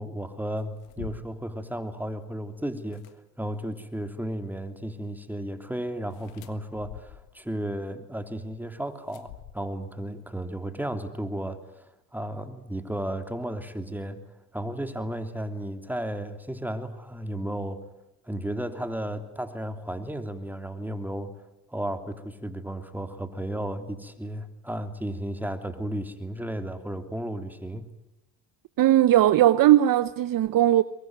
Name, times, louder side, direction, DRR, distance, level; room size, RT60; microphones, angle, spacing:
voice 1, 0.0-3.1 3.4-11.9 12.1-14.2 14.5-17.8 18.2-21.3 21.7-27.9, right 1 dB, 5° right, 3.2 m, -34 dB
sound 1, 0.6-1.5 2.8-3.1 6.1-7.4 9.1-10.0, left 11 dB, 90° left, 1.7 m, -45 dB
voice 2, 28.8-30.8, right 13 dB, 55° right, 0.9 m, -18 dB
23.0 x 21.5 x 9.5 m
supercardioid pair, 75°, 41 cm